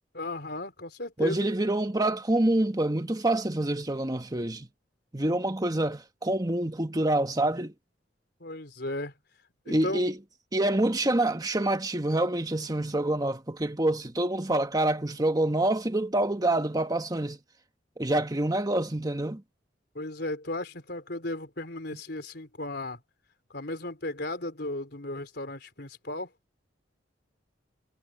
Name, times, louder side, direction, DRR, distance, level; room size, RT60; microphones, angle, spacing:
voice 1, 0.1-1.5 8.4-9.1 9.7-10.1 19.9-23.0 23.5-26.3, left 2 dB, 60° left, 4.3 m, -35 dB
voice 2, 1.2-4.7 5.1-7.7 9.7-10.2 10.5-17.4 18.0-19.4, right 1 dB, 20° right, 1.3 m, -26 dB
head